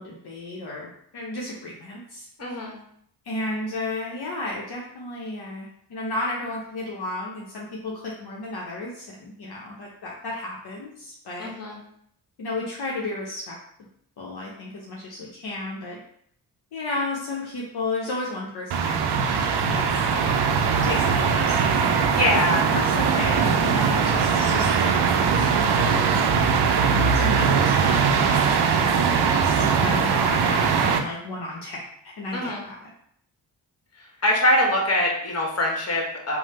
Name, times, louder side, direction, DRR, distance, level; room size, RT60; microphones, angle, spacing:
voice 1, 0.0-2.3 3.2-11.5 12.4-13.6 14.2-16.0 16.7-20.4 20.8-22.0 22.7-26.4 27.1-32.9, left 2 dB, 55° left, -3 dB, 0.7 m, -33 dB
voice 2, 2.4-2.8 11.4-11.8 22.1-22.7 32.3-32.6 34.2-36.4, left 1 dB, 30° left, 0 dB, 1.1 m, -23 dB
sound 1, 18.7-31.0, right 6 dB, 60° right, 0.5 m, -21 dB
3.1 x 2.1 x 3.0 m, 0.68 s
supercardioid pair, 40°, 47 cm